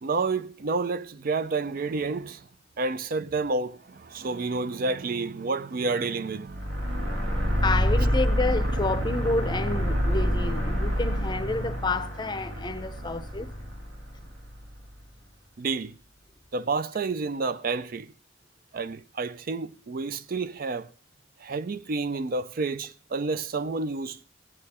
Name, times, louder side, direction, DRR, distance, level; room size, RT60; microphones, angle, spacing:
voice 1, 0.0-2.4 2.8-6.8 15.6-15.9 16.5-18.1 18.7-20.9 21.4-24.2, right 3 dB, 45° right, 0.4 m, -29 dB
sound 1, 6.5-14.8, equal, 75° right, 2.0 m, -27 dB
voice 2, 7.6-13.5, left 2 dB, 20° left, 0.6 m, -29 dB
16.5 x 8.7 x 4.2 m
head